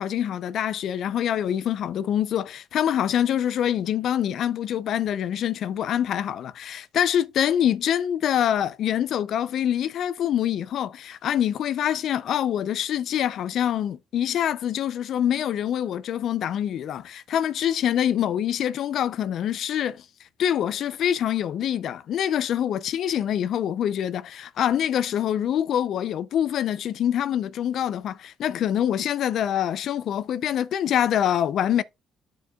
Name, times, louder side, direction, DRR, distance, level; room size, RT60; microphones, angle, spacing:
voice 1, 0.0-20.0 20.4-31.8, left 10 dB, 70° left, 0.5 m, -25 dB
13.0 x 4.6 x 2.4 m
cardioid pair, 90°, 0 cm